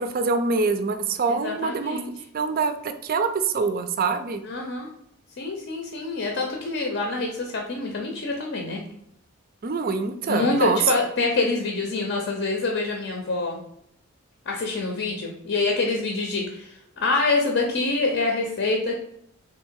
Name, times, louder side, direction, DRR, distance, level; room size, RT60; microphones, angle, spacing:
voice 1, 0.0-2.0 2.3-4.4 9.6-10.8, right 4 dB, 40° right, 9 dB, 0.4 m, -25 dB
voice 2, 1.3-2.1 4.4-4.9 5.4-8.8 10.3-13.6 14.5-18.9, left 3 dB, 60° left, 1 dB, 0.6 m, -26 dB
3.6 x 2.7 x 4.5 m, 0.74 s
head